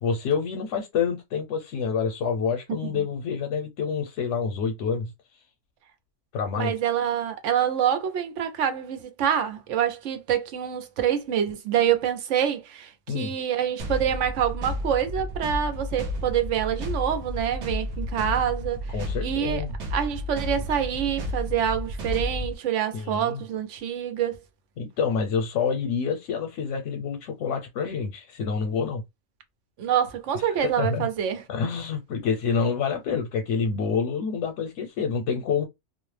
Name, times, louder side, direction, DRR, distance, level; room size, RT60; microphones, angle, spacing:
voice 1, 0.0-5.1 6.3-6.7 13.1-13.3 18.9-19.7 22.9-23.4 24.8-29.0 30.3-30.5 30.8-31.1 31.5-35.6, left 6 dB, 80° left, 0.9 m, -27 dB
voice 2, 6.6-18.8 19.2-19.6 19.9-24.4 29.8-31.4, right 9 dB, 85° right, 1.0 m, -26 dB
sound 1, 13.8-22.6, left 1 dB, 70° right, 0.9 m, -32 dB
2.4 x 2.0 x 3.2 m
omnidirectional pair, 1.2 m